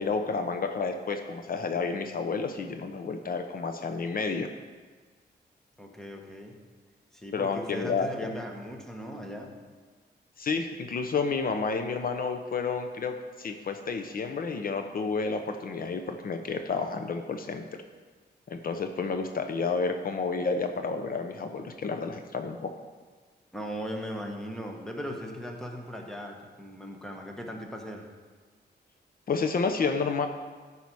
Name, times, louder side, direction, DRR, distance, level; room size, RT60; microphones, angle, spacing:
voice 1, 0.0-4.5 7.3-8.3 10.4-17.8 18.5-22.7 29.3-30.3, left 4 dB, 55° left, 6 dB, 0.7 m, -30 dB
voice 2, 5.8-6.6 7.1-9.6 23.5-28.1, equal, 5° left, 2 dB, 1.3 m, -38 dB
13.5 x 5.6 x 4.7 m, 1.5 s
wide cardioid pair, 125°, 18 cm